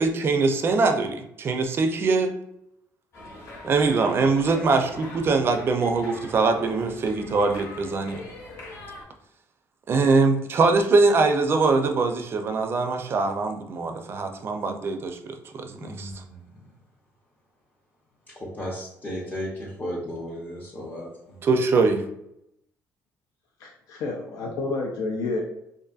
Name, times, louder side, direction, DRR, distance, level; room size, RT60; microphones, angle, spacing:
voice 1, 0.0-2.4 3.6-8.2 9.9-16.1 21.4-22.0, right 3 dB, 40° right, 6 dB, 0.4 m, -22 dB
sound 1, 3.1-9.0, left 1 dB, 55° left, 0.9 m, -42 dB
voice 2, 15.7-16.5 18.3-21.4, equal, 30° left, -6 dB, 0.6 m, -35 dB
voice 3, 23.6-25.4, left 3 dB, 75° left, 0 dB, 0.4 m, -29 dB
2.6 x 2.5 x 2.3 m, 0.79 s
cardioid pair, 115°, 6 cm